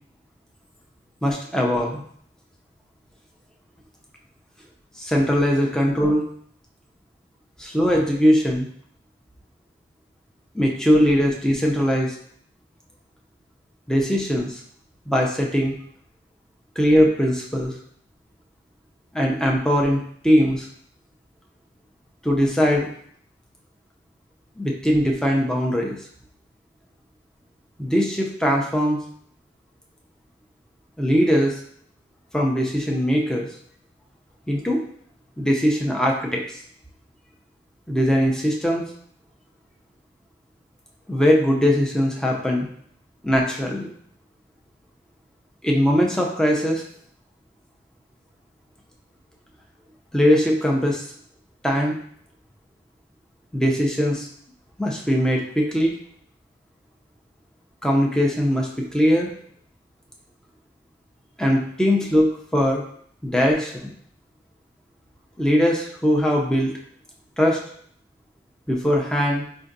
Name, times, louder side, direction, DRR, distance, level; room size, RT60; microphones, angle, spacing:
voice 1, 1.2-2.0 5.0-6.2 7.6-8.7 10.5-12.1 13.9-14.6 15.1-15.8 16.8-17.7 19.1-20.7 22.2-22.9 24.6-26.0 27.8-29.0 31.0-31.6 32.3-33.5 34.5-34.8 35.4-36.4 37.9-38.8 41.1-42.7 43.2-43.9 45.6-46.8 50.1-51.1 51.6-52.0 53.5-54.3 54.8-55.9 57.8-59.3 61.4-62.8 63.2-63.9 65.4-66.7 67.4-67.6 68.7-69.4, equal, 5° left, -1 dB, 0.4 m, -20 dB
4.9 x 2.6 x 2.5 m, 0.62 s
head